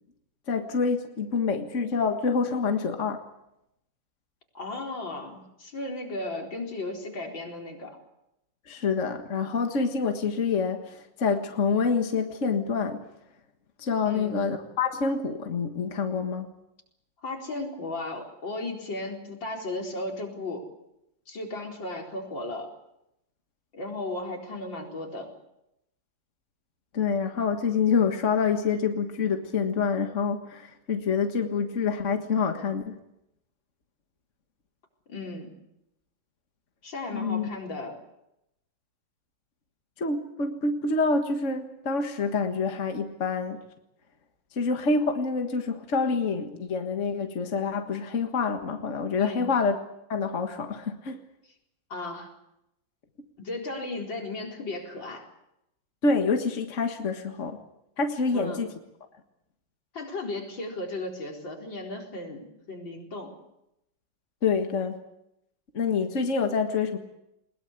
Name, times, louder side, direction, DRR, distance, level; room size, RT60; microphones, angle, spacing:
voice 1, 0.5-3.2 8.7-13.1 13.8-16.5 26.9-33.0 37.1-37.5 40.0-43.6 44.5-49.8 50.1-51.2 56.0-57.6 58.0-58.7 64.4-65.0 65.7-67.0, left 5 dB, 40° left, 5 dB, 1.9 m, -27 dB
voice 2, 4.5-8.0 14.0-14.4 17.2-20.7 21.3-22.7 23.7-25.3 35.1-35.6 36.8-38.0 49.2-49.5 51.9-52.3 53.4-55.3 58.3-58.6 59.9-63.3, left 2 dB, 80° left, 0 dB, 5.0 m, -35 dB
21.0 x 21.0 x 8.3 m, 0.84 s
omnidirectional pair, 2.0 m